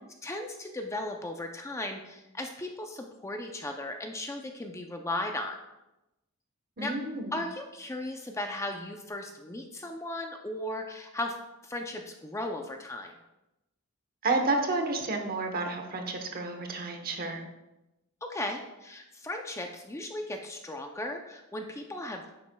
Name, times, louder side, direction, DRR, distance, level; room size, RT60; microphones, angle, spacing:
voice 1, 0.2-5.6 6.8-6.9 7.3-11.4 11.6-13.1 18.2-22.3, left 1 dB, 15° left, 3 dB, 0.5 m, -36 dB
voice 2, 6.8-7.4 14.2-17.4, right 3 dB, 40° right, 4 dB, 1.0 m, -30 dB
9.9 x 7.3 x 2.2 m, 0.96 s
head